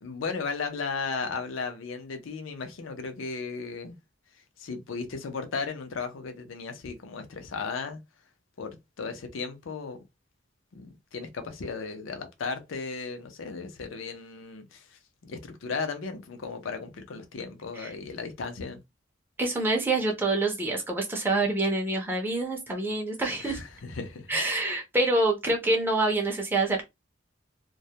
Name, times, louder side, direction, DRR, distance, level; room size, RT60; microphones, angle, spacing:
voice 1, 0.0-4.0 4.6-8.0 8.6-10.0 10.7-18.8 23.4-24.3, left 4 dB, 85° left, 0.5 m, -35 dB
voice 2, 19.4-23.6 24.3-26.8, right 2 dB, 10° right, 0.4 m, -26 dB
2.2 x 2.0 x 2.7 m
head